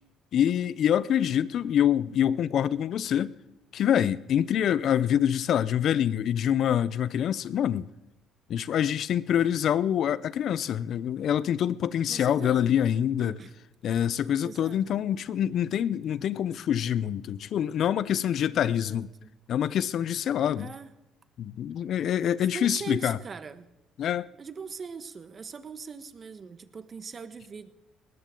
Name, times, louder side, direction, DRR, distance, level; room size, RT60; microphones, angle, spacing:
voice 1, 0.3-3.3 3.7-7.9 8.5-13.4 13.8-19.1 19.5-20.7 21.4-23.2 24.0-24.3, left 10 dB, 60° left, 0.6 m, -26 dB
voice 2, 12.1-12.7 13.2-13.5 14.4-15.0 18.6-19.3 20.6-20.9 22.2-23.7 24.4-27.7, right 5 dB, 40° right, 1.3 m, -41 dB
20.5 x 18.5 x 3.9 m
supercardioid pair, 85°, 0 cm